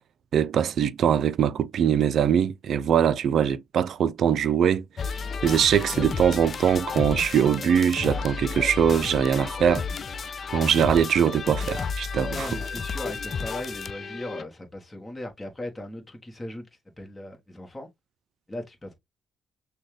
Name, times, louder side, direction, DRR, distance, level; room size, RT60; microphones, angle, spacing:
voice 1, 0.3-4.8 5.4-9.8 10.5-12.5, right 8 dB, 65° right, 0.4 m, -22 dB
sound 1, 5.0-14.4, left 5 dB, 45° left, 0.4 m, -32 dB
voice 2, 12.3-16.7 17.0-17.9 18.5-18.9, left 1 dB, 15° left, 1.2 m, -38 dB
6.2 x 2.3 x 3.2 m
cardioid pair, 90°, 0 cm